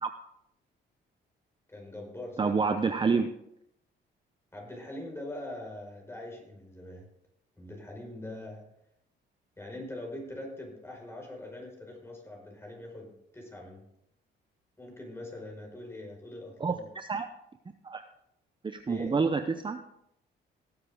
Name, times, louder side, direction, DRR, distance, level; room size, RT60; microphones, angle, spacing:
voice 1, 1.7-3.0 4.5-7.1 7.6-8.7 9.6-13.8 14.8-16.9 18.9-19.2, left 1 dB, 10° left, 0 dB, 5.3 m, -43 dB
voice 2, 2.4-3.3 16.6-17.3 17.8-18.0 18.6-19.8, right 4 dB, 25° right, 8 dB, 0.7 m, -28 dB
18.0 x 8.1 x 3.7 m, 0.78 s
cardioid pair, 90°, 20 cm